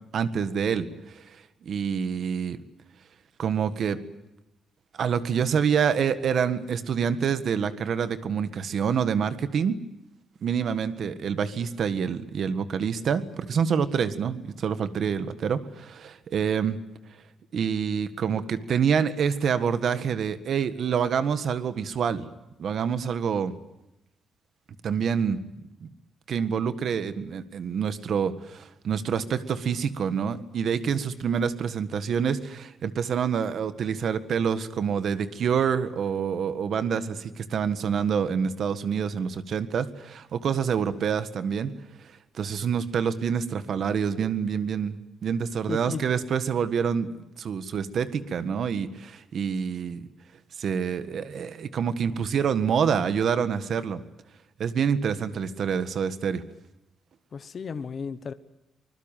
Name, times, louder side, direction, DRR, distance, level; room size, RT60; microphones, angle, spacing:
voice 1, 0.1-0.9 1.6-2.6 3.4-4.0 5.0-9.7 10.4-16.8 17.5-22.3 22.6-23.5 24.8-25.4 25.8-25.9 26.3-41.7 42.4-45.0 45.2-47.1 47.4-50.1 50.6-54.0 54.6-56.4, right 7 dB, 45° right, 12 dB, 1.6 m, -27 dB
voice 2, 45.7-46.0 57.3-58.3, left 6 dB, 35° left, 12 dB, 1.1 m, -34 dB
25.5 x 20.5 x 9.1 m, 0.93 s
cardioid pair, 180°, 0 cm